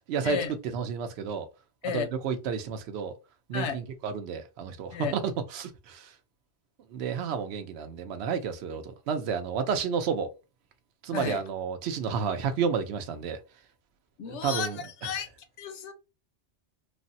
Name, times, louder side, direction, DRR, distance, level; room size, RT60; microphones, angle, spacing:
voice 1, 0.7-1.5 1.8-3.1 3.5-6.1 6.9-10.3 11.0-13.4 14.3-14.8, right 6 dB, 70° right, 0.8 m, -31 dB
voice 2, 11.1-11.4 14.2-15.3 15.6-15.9, left 7 dB, 90° left, 0.9 m, -32 dB
3.3 x 2.1 x 2.6 m
omnidirectional pair, 1.1 m